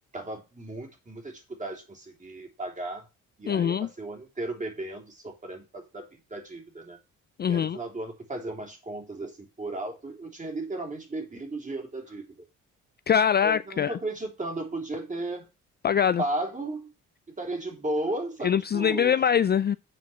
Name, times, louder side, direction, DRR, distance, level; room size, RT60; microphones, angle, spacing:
voice 1, 0.1-3.0 3.4-7.0 7.5-12.2 13.4-15.5 16.2-16.9 17.4-19.1, right 2 dB, 25° right, 3.4 m, -35 dB
voice 2, 3.5-3.9 7.4-7.8 13.1-14.0 15.8-16.2 18.4-19.8, left 8 dB, 35° left, 0.4 m, -23 dB
7.8 x 4.8 x 6.9 m
cardioid pair, 90°, 30 cm